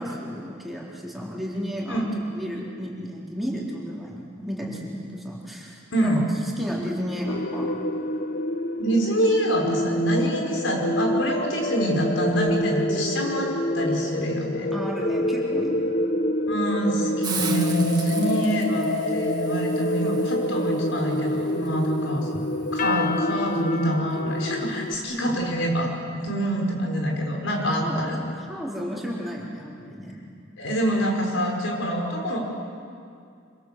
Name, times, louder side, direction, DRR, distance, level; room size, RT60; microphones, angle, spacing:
voice 1, 0.0-2.0 2.3-7.8 14.7-15.9 27.7-28.0 28.4-30.2, equal, ahead, -4 dB, 4.0 m, -33 dB
sound 1, 7.3-24.9, left 1 dB, 45° left, 0.9 m, -27 dB
voice 2, 8.8-13.5 13.7-14.7 16.5-22.3 22.7-25.9 26.2-28.2 30.6-32.4, equal, 75° left, 0 dB, 5.5 m, -25 dB
Hiss, 17.2-22.9, right 6 dB, 20° right, 2.1 m, -38 dB
26.5 x 26.0 x 7.7 m, 2.4 s
head